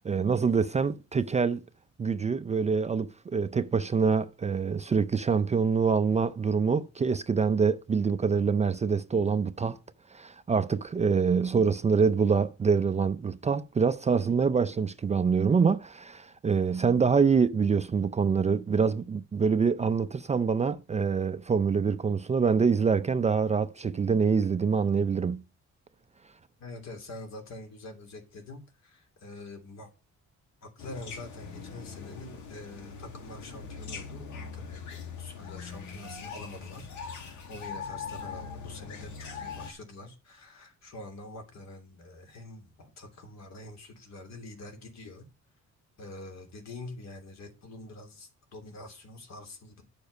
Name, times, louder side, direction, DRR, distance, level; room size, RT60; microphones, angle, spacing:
voice 1, 0.0-1.6 2.0-9.8 10.1-25.4, right 5 dB, 25° right, 0.4 m, -25 dB
voice 2, 26.6-29.9 30.6-45.3 46.0-49.8, left 2 dB, 65° left, 3.1 m, -45 dB
sound 1, 30.8-39.7, left 5 dB, 85° left, 1.9 m, -41 dB
10.5 x 6.9 x 5.4 m
cardioid pair, 155°, 29 cm